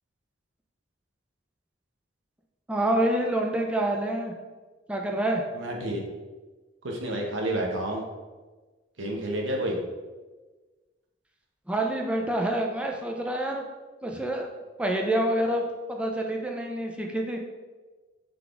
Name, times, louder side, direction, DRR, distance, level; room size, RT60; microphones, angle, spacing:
voice 1, 2.7-4.3 4.9-5.4 11.7-13.6 14.0-14.5 14.8-17.4, right 1 dB, 5° right, 1 dB, 0.4 m, -27 dB
voice 2, 5.5-6.0 6.8-8.0 9.0-9.8, right 1 dB, 80° right, 0 dB, 0.9 m, -29 dB
4.0 x 3.5 x 3.4 m, 1.3 s
head